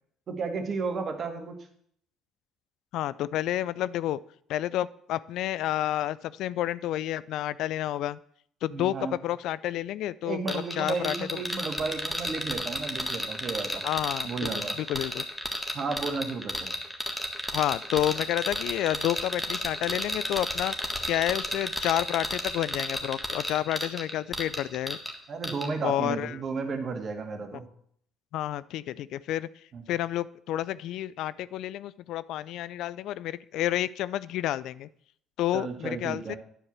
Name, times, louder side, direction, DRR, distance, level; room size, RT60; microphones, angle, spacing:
voice 1, 0.3-1.5 8.7-9.2 10.2-13.8 14.2-14.8 15.7-16.5 25.3-27.7 29.7-29.8 35.5-36.4, right 4 dB, 50° right, 5 dB, 1.9 m, -33 dB
voice 2, 2.9-4.2 4.5-8.2 8.6-11.1 13.8-14.5 14.8-15.2 17.5-20.7 21.1-25.0 25.8-26.4 28.3-29.5 29.9-34.9 35.4-36.4, left 13 dB, 70° left, 19 dB, 0.3 m, -30 dB
sound 1, 10.5-25.1 25.4-25.7, equal, 5° left, 1.7 m, -32 dB
10.0 x 4.8 x 7.3 m, 0.66 s
supercardioid pair, 70°, 0 cm